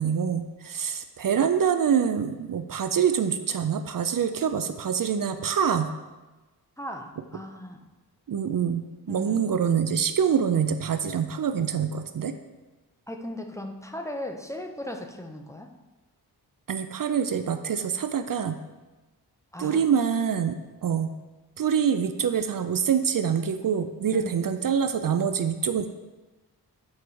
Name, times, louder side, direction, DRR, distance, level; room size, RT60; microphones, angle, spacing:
voice 1, 0.0-5.9 8.3-12.3 16.7-18.6 19.6-21.1 21.6-25.9, right 7 dB, 55° right, 9 dB, 0.5 m, -25 dB
voice 2, 6.8-7.8 9.1-9.4 13.1-15.7 19.5-19.8 24.1-24.3, left 1 dB, 5° left, 3 dB, 0.7 m, -37 dB
8.5 x 4.7 x 4.7 m, 1.2 s
wide cardioid pair, 90°, 40 cm